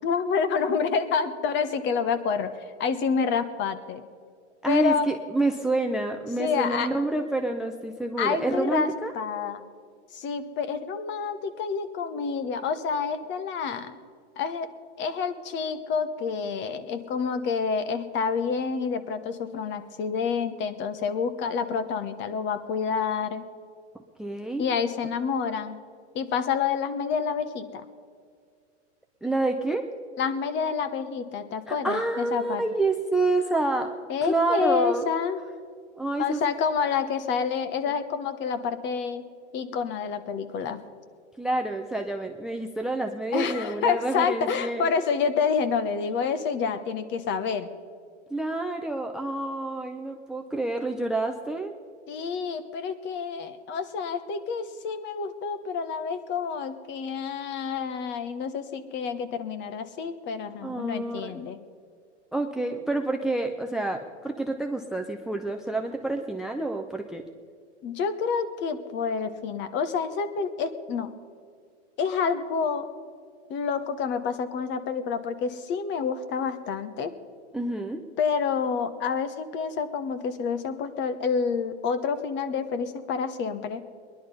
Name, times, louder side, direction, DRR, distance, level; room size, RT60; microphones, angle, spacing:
voice 1, 0.0-2.5 2.8-4.0 4.7-5.1 6.4-6.9 8.2-8.9 9.1-9.6 10.1-13.9 14.4-14.7 15.0-23.5 24.6-25.8 26.1-27.8 30.2-32.6 34.1-35.4 36.2-39.2 39.5-40.8 43.3-47.7 52.1-61.6 67.8-71.1 72.0-72.9 73.5-77.1 78.2-83.8, left 6 dB, 30° left, 11 dB, 1.1 m, -28 dB
voice 2, 4.6-9.1 24.2-24.7 29.2-29.9 31.7-34.0 34.2-35.1 36.0-36.4 41.4-44.8 48.3-51.8 60.6-61.3 62.3-67.3 77.5-78.0, right 2 dB, ahead, 6 dB, 0.5 m, -28 dB
20.0 x 11.0 x 5.4 m, 2.1 s
hypercardioid pair, 125°, 35 cm